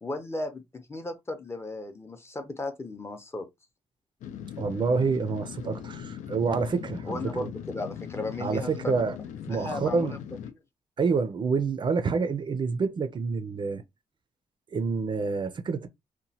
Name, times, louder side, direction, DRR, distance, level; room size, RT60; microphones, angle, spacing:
voice 1, 0.0-3.5 7.0-9.0 9.5-10.2 10.4-10.5, left 2 dB, 20° left, 0.6 m, -35 dB
sound 1, 4.2-10.5, left 9 dB, 90° left, 0.4 m, -40 dB
voice 2, 4.6-7.5 8.4-9.2 9.5-10.2 11.0-13.8 14.7-15.9, right 4 dB, 40° right, 0.4 m, -27 dB
2.9 x 2.1 x 2.7 m
cardioid pair, 130°, 12 cm